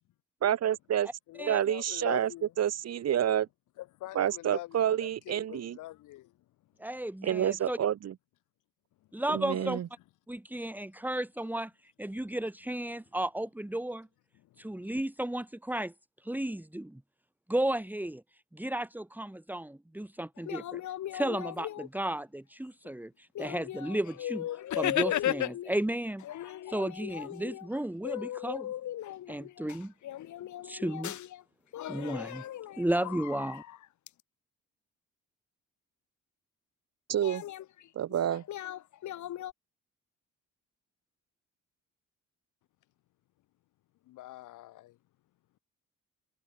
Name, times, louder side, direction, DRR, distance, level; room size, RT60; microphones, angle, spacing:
voice 1, 0.4-1.1 1.5-2.3 2.6-3.5 4.1-5.8 7.2-8.1 9.3-9.9 37.1-37.4 37.9-38.4, right 10 dB, 55° right, 1.4 m, -28 dB
voice 2, 1.3-2.5 3.8-6.3 9.2-9.7 14.4-14.8 44.1-45.0, left 16 dB, 90° left, 2.2 m, -45 dB
voice 3, 6.8-7.8 9.1-9.8 10.3-14.1 14.6-15.9 16.2-17.0 17.5-18.2 18.5-20.8 21.1-24.5 24.7-28.7 29.3-29.9 30.6-31.2 31.9-32.4 32.8-33.6, right 1 dB, 5° right, 3.2 m, -34 dB
sound 1, 20.4-22.2 22.8-22.9 23.3-25.8 26.2-31.4 31.7-34.1 37.2-39.5, left 12 dB, 70° left, 2.0 m, -37 dB
cardioid pair, 90°, 30 cm